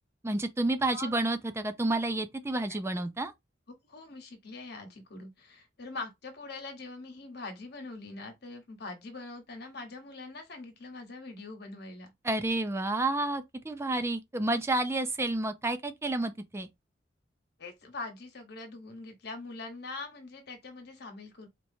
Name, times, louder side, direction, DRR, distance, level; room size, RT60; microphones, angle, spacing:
voice 1, 0.2-3.3 12.2-16.7, right 2 dB, 15° right, 0.4 m, -30 dB
voice 2, 3.9-12.1 17.6-21.5, left 3 dB, 60° left, 1.2 m, -43 dB
4.4 x 2.8 x 2.7 m
head